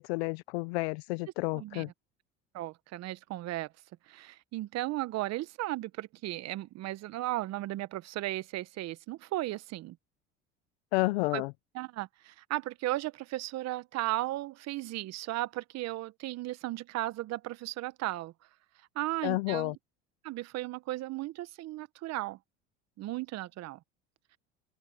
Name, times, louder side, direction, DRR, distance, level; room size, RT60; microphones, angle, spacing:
voice 1, 0.0-1.9 10.9-11.5 19.2-19.7, left 24 dB, 80° left, 0.7 m, -30 dB
voice 2, 1.5-1.9 2.5-3.7 4.1-10.0 11.3-11.4 11.7-18.3 18.9-19.8 20.2-22.4 23.0-23.8, right 17 dB, 55° right, 1.2 m, -35 dB
open air
hypercardioid pair, 85°, 31 cm